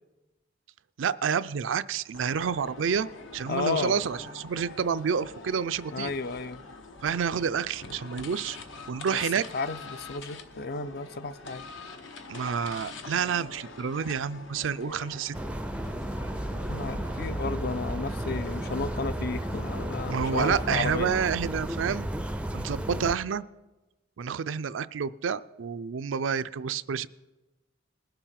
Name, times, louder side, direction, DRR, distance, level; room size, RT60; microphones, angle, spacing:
voice 1, 1.0-6.1 7.0-8.6 8.9-9.4 12.3-15.4 20.1-22.1 22.5-23.4 24.2-27.1, right 6 dB, 85° right, 14 dB, 0.4 m, -29 dB
sound 1, 2.1-21.3, left 3 dB, 80° left, 1.1 m, -45 dB
voice 2, 3.5-4.0 5.9-6.6 9.5-11.6 16.7-21.2, left 4 dB, 55° left, 14 dB, 0.5 m, -33 dB
sound 2, 15.3-23.2, right 1 dB, 5° right, 0.4 m, -33 dB
20.0 x 6.9 x 5.8 m, 1.1 s
head